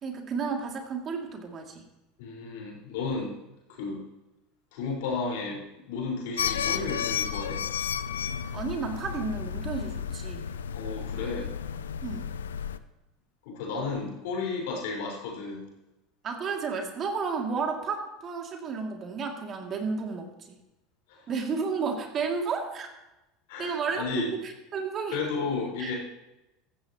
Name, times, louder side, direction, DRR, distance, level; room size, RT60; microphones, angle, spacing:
voice 1, 0.0-1.9 8.5-10.5 12.0-12.3 16.2-20.5 21.3-22.9 23.6-25.2 25.8-25.9, right 5 dB, 40° right, 2 dB, 2.6 m, -32 dB
voice 2, 2.2-3.3 3.7-4.0 4.7-7.6 10.7-11.5 13.4-15.7 21.1-21.3 23.5-24.3 25.1-26.0, left 4 dB, 75° left, -2 dB, 4.9 m, -33 dB
sound 1, 6.4-12.8, left 8 dB, 90° left, 0.5 m, -32 dB
15.0 x 14.0 x 3.0 m, 0.97 s
hypercardioid pair, 85°, 0 cm